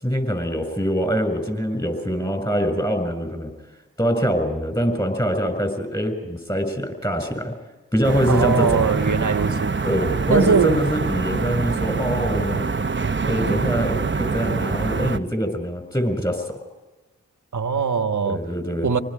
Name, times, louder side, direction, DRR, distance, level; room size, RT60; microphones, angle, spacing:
voice 1, 0.0-3.5 4.0-7.5 7.9-8.8 9.8-12.7 13.2-16.6 18.2-18.9, equal, 15° left, 8 dB, 6.6 m, -24 dB
sound 1, 8.0-15.2, right 4 dB, 40° right, 1.0 m, -25 dB
voice 2, 8.3-9.7 10.3-10.8 17.5-18.4 18.8-19.0, right 5 dB, 75° right, 7 dB, 1.5 m, -21 dB
26.5 x 20.0 x 5.0 m, 1.1 s
cardioid pair, 40°, 30 cm